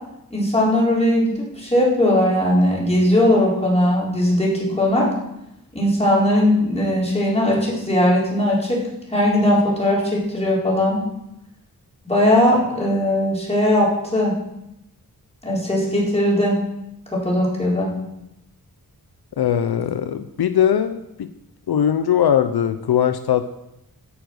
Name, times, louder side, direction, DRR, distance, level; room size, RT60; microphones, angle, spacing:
voice 1, 0.3-5.1 5.7-8.8 9.1-11.0 12.1-14.3 15.4-16.6 17.1-17.9, left 1 dB, 15° left, -5 dB, 5.1 m, -19 dB
voice 2, 19.4-21.3 21.7-23.5, left 9 dB, 80° left, 11 dB, 0.7 m, -20 dB
17.0 x 7.2 x 6.4 m, 0.89 s
wide cardioid pair, 105°, 37 cm